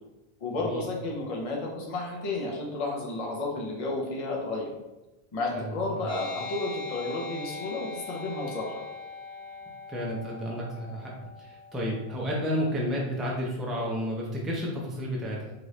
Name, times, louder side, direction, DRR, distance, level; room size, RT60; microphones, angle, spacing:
voice 1, 0.4-4.7 5.3-8.8, left 2 dB, 40° left, -2 dB, 0.6 m, -32 dB
sound 1, 6.1-13.1, left 4 dB, 45° right, 1.1 m, -42 dB
voice 2, 9.9-11.1 11.4-15.5, equal, ahead, -3 dB, 0.4 m, -31 dB
2.9 x 2.5 x 3.1 m, 1.0 s
omnidirectional pair, 1.0 m